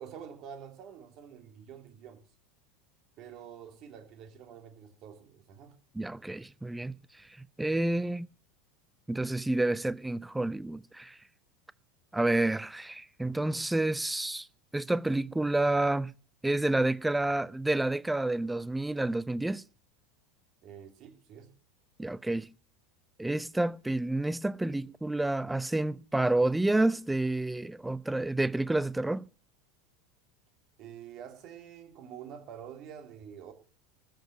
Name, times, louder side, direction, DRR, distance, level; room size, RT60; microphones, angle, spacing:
voice 1, 0.0-2.2 3.2-5.8 20.6-21.5 30.8-33.5, right 8 dB, 45° right, 3.1 m, -47 dB
voice 2, 5.9-7.0 7.4-8.3 9.1-11.2 12.1-14.5 14.7-16.1 16.4-19.6 22.0-22.5 23.2-29.3, right 2 dB, 5° right, 0.6 m, -29 dB
14.0 x 7.3 x 8.2 m
figure-of-eight pair, 80°, 0 cm